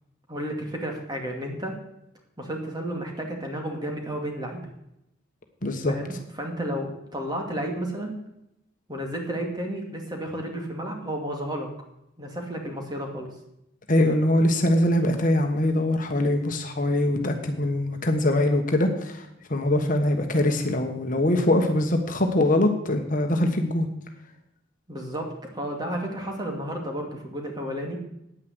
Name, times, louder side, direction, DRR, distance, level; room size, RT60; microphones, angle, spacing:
voice 1, 0.3-1.8 2.4-4.6 5.9-8.1 8.9-11.7 12.2-13.3 24.9-28.0, right 1 dB, 20° right, 2 dB, 2.3 m, -32 dB
voice 2, 5.6-5.9 13.9-23.9, left 1 dB, 40° left, 4 dB, 1.3 m, -23 dB
9.6 x 9.4 x 7.9 m, 0.84 s
head